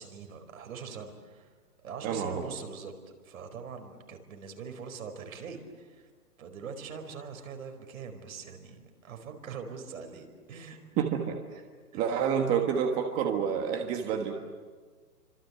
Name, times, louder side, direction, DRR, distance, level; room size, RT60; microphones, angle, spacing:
voice 1, 0.0-2.9 3.2-6.1 6.4-10.8 11.9-12.0, right 6 dB, 60° right, 5 dB, 4.9 m, -43 dB
voice 2, 2.0-2.4 11.0-11.6 11.9-14.3, right 7 dB, 20° right, 4 dB, 1.4 m, -28 dB
28.5 x 25.5 x 8.2 m, 1.5 s
hypercardioid pair, 155°, 46 cm